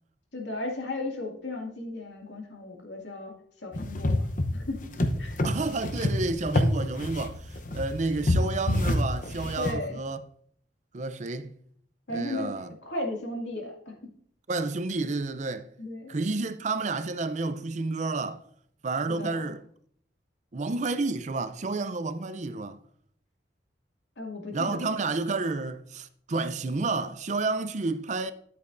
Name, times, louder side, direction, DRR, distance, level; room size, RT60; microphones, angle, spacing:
voice 1, 0.3-3.3 3.6-4.9 5.2-5.4 9.6-10.0 12.1-12.5 12.8-14.1 15.8-16.1 19.1-19.5 24.2-25.0, left 2 dB, 85° left, 2.2 m, -35 dB
sound 1, 3.7-9.7, left 1 dB, 45° left, 0.8 m, -27 dB
voice 2, 5.4-10.2 10.9-11.5 12.1-12.7 14.5-15.7 16.1-18.4 18.8-19.6 20.5-22.8 24.5-28.3, right 3 dB, 40° right, 0.5 m, -30 dB
12.0 x 8.2 x 2.6 m
head